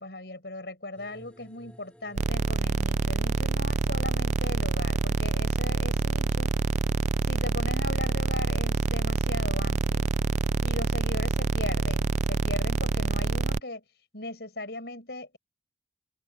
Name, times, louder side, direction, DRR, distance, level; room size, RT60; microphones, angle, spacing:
voice 1, 0.0-6.5 7.3-10.1 10.6-13.8 14.1-15.4, left 2 dB, 65° left, 7.8 m, -38 dB
sound 1, 1.0-6.5, equal, 5° left, 3.4 m, -52 dB
sound 2, 2.2-13.6, right 4 dB, 40° right, 0.3 m, -26 dB
head